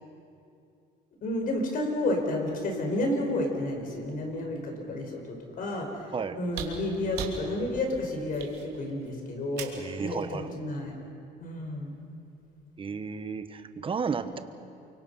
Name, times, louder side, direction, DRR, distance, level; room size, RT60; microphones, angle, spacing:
voice 1, 1.2-10.9 11.4-11.9 14.1-14.4, left 1 dB, 55° left, 2 dB, 5.2 m, -31 dB
sound 1, 6.5-9.9 11.3-11.4, right 8 dB, 80° right, 3.0 m, -40 dB
voice 2, 9.7-10.6 12.8-14.4, right 5 dB, 30° right, 10 dB, 1.3 m, -33 dB
29.5 x 24.0 x 5.7 m, 2.5 s
cardioid pair, 110°, 17 cm